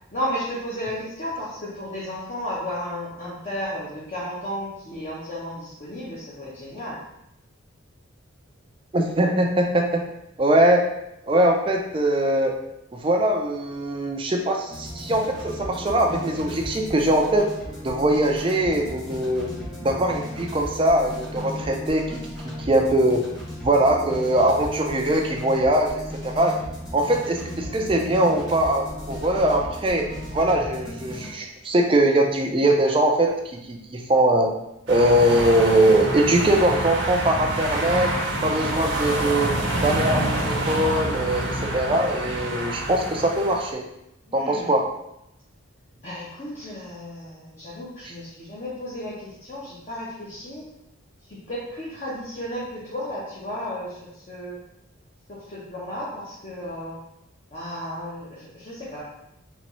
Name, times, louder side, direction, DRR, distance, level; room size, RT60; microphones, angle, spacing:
voice 1, 0.1-7.0 44.3-44.7 46.0-50.6 51.5-54.6 55.3-57.0 57.5-59.0, equal, 35° left, -9 dB, 0.9 m, -33 dB
voice 2, 8.9-10.0 10.4-10.9 11.3-12.6 12.9-17.5 17.8-19.5 19.8-22.2 22.4-23.2 23.6-26.5 26.9-34.5 34.9-38.2 38.4-39.6 39.8-43.9 44.3-44.8, right 1 dB, 25° right, 2 dB, 0.4 m, -21 dB
sound 1, 14.7-31.3, equal, 20° left, 1.2 m, -36 dB
sound 2, 34.9-43.7, right 1 dB, 60° right, 0.7 m, -27 dB
4.1 x 3.0 x 3.0 m, 0.84 s
head